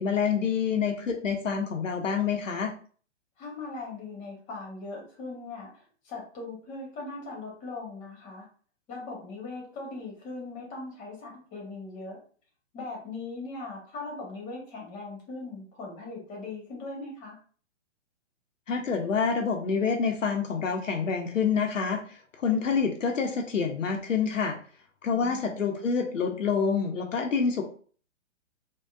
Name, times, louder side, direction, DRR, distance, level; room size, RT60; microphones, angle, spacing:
voice 1, 0.0-2.7 18.7-22.0 22.4-24.6 25.0-27.6, left 6 dB, 85° left, 3 dB, 0.6 m, -27 dB
voice 2, 3.4-8.5 8.9-12.2 12.7-17.4 25.1-25.8, left 3 dB, 20° left, -1 dB, 1.0 m, -40 dB
3.6 x 2.1 x 2.3 m, 0.43 s
figure-of-eight pair, 120°, 37 cm